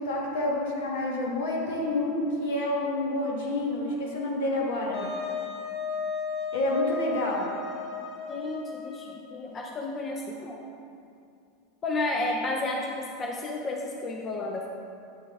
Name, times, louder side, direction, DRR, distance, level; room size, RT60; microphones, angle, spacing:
voice 1, 0.0-5.1 6.5-7.5, left 2 dB, 65° left, -2 dB, 1.2 m, -28 dB
Wind instrument woodwind instrument, 4.9-9.3, left 4 dB, 35° left, 0.7 m, -35 dB
voice 2, 8.3-10.6 11.8-14.7, left 2 dB, 20° left, 1 dB, 0.3 m, -32 dB
8.3 x 3.9 x 3.5 m, 2.5 s
supercardioid pair, 175°, 0 cm